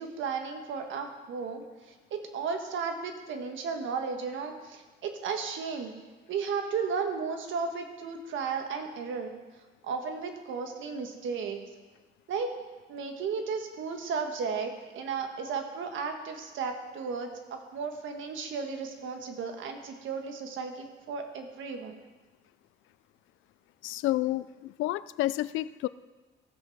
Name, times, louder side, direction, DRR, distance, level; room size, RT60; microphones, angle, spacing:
voice 1, 0.0-5.9 6.3-9.3 9.8-11.6 12.3-12.5 12.9-22.0, right 5 dB, 75° right, 5 dB, 1.5 m, -34 dB
voice 2, 23.8-25.9, left 16 dB, 85° left, 17 dB, 0.4 m, -30 dB
15.5 x 7.6 x 4.1 m, 1.3 s
cardioid pair, 90°, 20 cm